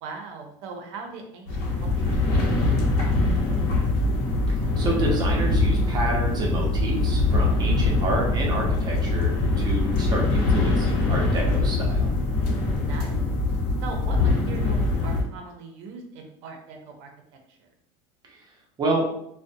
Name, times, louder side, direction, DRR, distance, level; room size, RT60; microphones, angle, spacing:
voice 1, 0.0-3.6 12.7-13.3 13.8-17.1 17.5-17.6, right 4 dB, 70° right, 3 dB, 0.6 m, -40 dB
sound 1, 1.5-15.2, left 2 dB, 65° left, 0.8 m, -23 dB
voice 2, 4.5-12.1 18.8-19.1, right 2 dB, 25° right, -1 dB, 0.7 m, -29 dB
2.5 x 2.1 x 2.6 m, 0.74 s
supercardioid pair, 130°, 16 cm